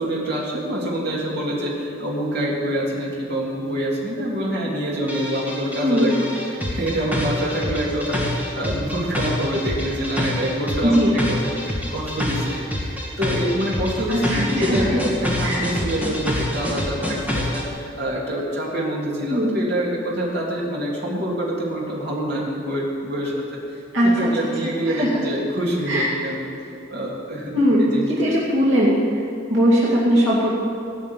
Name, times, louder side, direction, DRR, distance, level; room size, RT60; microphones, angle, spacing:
voice 1, 0.0-23.6 24.0-26.5 26.9-27.5 27.8-28.3, equal, 55° right, -4 dB, 3.2 m, -26 dB
sound 1, 5.1-17.6, left 1 dB, 10° right, 2.2 m, -26 dB
voice 2, 5.8-6.1 10.8-11.2 14.1-14.8 15.4-15.7 19.3-19.6 23.9-24.3 24.9-25.2 25.9-26.1 27.5-29.2 29.5-30.5, equal, 75° right, -7 dB, 2.4 m, -19 dB
17.5 x 6.1 x 9.1 m, 2.6 s
head